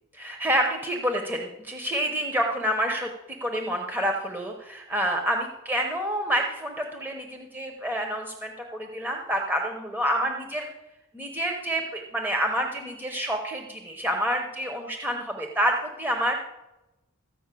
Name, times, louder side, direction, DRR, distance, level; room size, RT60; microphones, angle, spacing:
voice 1, 0.1-10.7 11.1-16.3, equal, 10° right, 2 dB, 1.0 m, -28 dB
14.0 x 5.5 x 8.3 m, 0.98 s
head